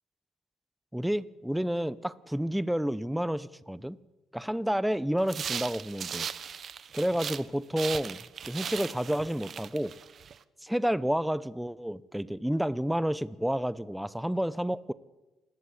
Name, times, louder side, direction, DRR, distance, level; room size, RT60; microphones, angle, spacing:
voice 1, 0.9-4.0 4.3-6.3 6.9-8.2 8.4-9.9 10.6-14.9, equal, 5° right, 17 dB, 1.0 m, -30 dB
sound 1, 5.2-7.5 7.8-10.4, right 7 dB, 55° right, 1.2 m, -38 dB
27.0 x 19.5 x 8.7 m, 1.1 s
cardioid pair, 90°, 0 cm